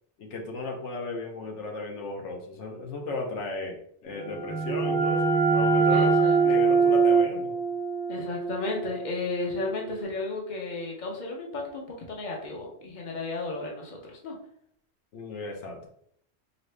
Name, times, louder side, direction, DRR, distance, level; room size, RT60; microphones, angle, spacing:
voice 1, 0.2-6.1 6.4-7.5 15.1-15.9, left 2 dB, 85° left, 2 dB, 1.1 m, -35 dB
sound 1, 4.1-9.7, right 5 dB, 5° left, 0.3 m, -24 dB
voice 2, 5.9-6.4 8.1-14.4, left 3 dB, 45° left, -1 dB, 1.0 m, -34 dB
4.0 x 3.0 x 3.3 m, 0.68 s
omnidirectional pair, 1.2 m